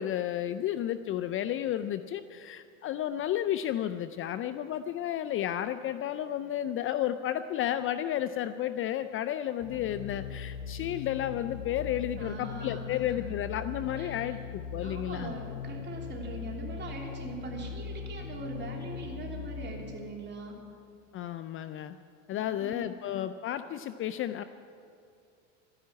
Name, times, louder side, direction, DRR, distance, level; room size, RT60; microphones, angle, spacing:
voice 1, 0.0-15.4 21.1-22.0 22.3-24.4, left 11 dB, 35° left, 12 dB, 0.5 m, -32 dB
sound 1, 9.6-20.3, left 6 dB, 80° left, 1.0 m, -40 dB
voice 2, 12.2-13.3 14.0-14.3 14.8-20.6 22.3-22.9, right 2 dB, 30° right, 0 dB, 3.4 m, -41 dB
13.0 x 10.5 x 9.5 m, 2.5 s
supercardioid pair, 105°, 37 cm